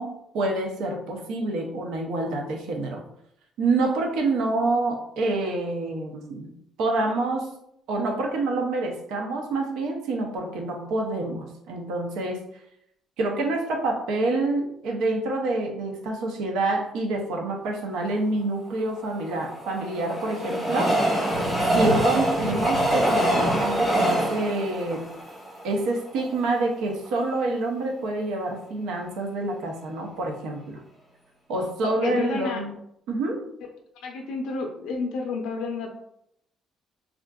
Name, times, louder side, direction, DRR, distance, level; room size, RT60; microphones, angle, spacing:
voice 1, 0.0-3.0 3.6-6.5 6.8-7.6 7.9-12.4 13.2-21.3 21.7-25.1 25.6-30.8 31.5-32.8 33.1-33.5, right 2 dB, 85° right, 2 dB, 0.5 m, -27 dB
Train, 19.0-26.2 26.8-26.9 27.1-27.2, right 1 dB, 15° right, 1.0 m, -24 dB
voice 2, 31.8-32.6 34.0-35.9, left 3 dB, 90° left, 2 dB, 0.4 m, -30 dB
3.5 x 2.4 x 2.2 m, 0.75 s
cardioid pair, 165°, 0 cm